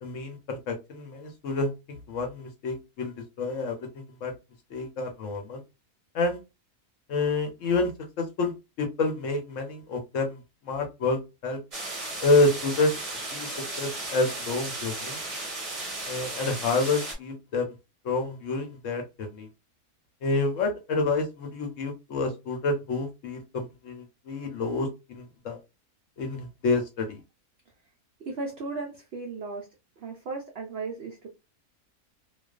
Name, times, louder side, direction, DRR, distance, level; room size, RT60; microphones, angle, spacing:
voice 1, 0.0-3.9 4.2-4.3 4.7-5.6 6.1-6.4 7.1-7.9 8.2-8.5 8.8-11.6 12.2-12.9 13.3-13.5 13.8-15.2 16.1-17.7 18.0-19.5 20.2-25.6 26.2-27.2, left 3 dB, 65° left, 4 dB, 0.9 m, -28 dB
Heavy Rain from Front Porch, 11.7-17.1, right 2 dB, 30° right, 0.7 m, -35 dB
voice 2, 28.3-29.7 30.0-31.3, right 3 dB, 65° right, 1 dB, 0.6 m, -35 dB
2.4 x 2.3 x 2.3 m, 0.25 s
omnidirectional pair, 1.6 m